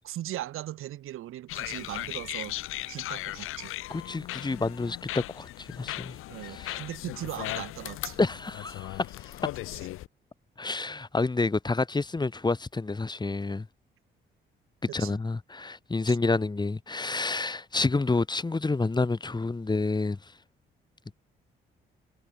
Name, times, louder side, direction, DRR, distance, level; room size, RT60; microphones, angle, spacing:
voice 1, 0.0-2.5 2.9-3.7 6.3-8.2 9.7-9.8 14.9-15.2 16.1-16.2, right 14 dB, 80° right, 5.0 m, -38 dB
sound 1, 1.5-10.1, left 15 dB, 85° left, 1.2 m, -37 dB
voice 2, 3.9-6.2 6.5-6.8 8.2-9.3 10.6-13.7 14.9-20.2, left 3 dB, 20° left, 1.3 m, -29 dB
supercardioid pair, 65°, 21 cm